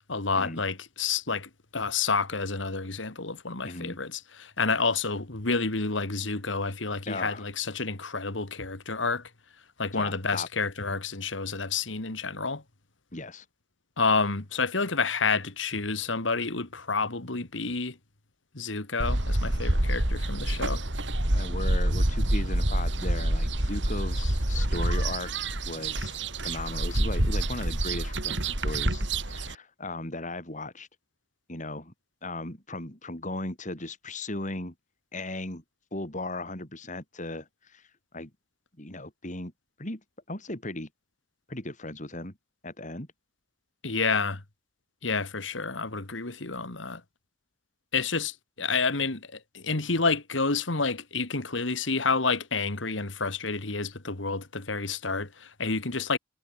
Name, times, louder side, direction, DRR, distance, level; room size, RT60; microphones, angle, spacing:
voice 1, 0.1-9.2 9.8-12.6 14.0-18.0 18.5-20.8 43.8-44.4 45.0-47.0 47.9-49.3 49.5-56.2, left 4 dB, 80° left, 2.3 m, -29 dB
voice 2, 3.6-4.0 7.1-7.4 9.9-10.5 13.1-13.4 20.7-20.8 21.3-26.2 26.4-30.9 31.5-31.9 32.2-34.7 35.1-35.6 35.9-37.8 38.1-38.3 38.8-39.5 39.8-40.0 40.3-40.9 41.5-42.3 42.6-43.1, left 2 dB, 40° left, 5.8 m, -37 dB
sound 1, 19.0-29.5, right 1 dB, 65° right, 3.7 m, -27 dB
head